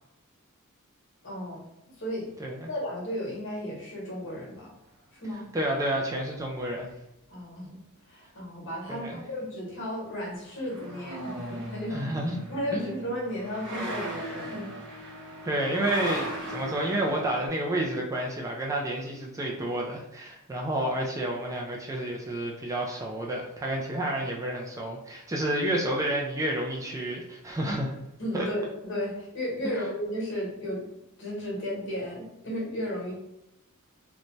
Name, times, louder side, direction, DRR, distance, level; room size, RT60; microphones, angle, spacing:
voice 1, 1.2-1.6 2.0-2.3 2.7-4.7 5.1-5.5 7.3-7.8 8.1-12.1 12.5-14.7 28.2-30.9 31.2-33.1, equal, 60° left, -4 dB, 1.1 m, -34 dB
voice 2, 5.5-6.9 8.9-9.2 11.9-12.4 12.7-13.0 15.4-27.9 28.3-28.5 29.6-29.8, right 1 dB, 15° right, -1 dB, 0.3 m, -30 dB
sound 1, 10.5-17.5, right 1 dB, 60° right, 0.7 m, -38 dB
2.6 x 2.2 x 3.0 m, 0.85 s
head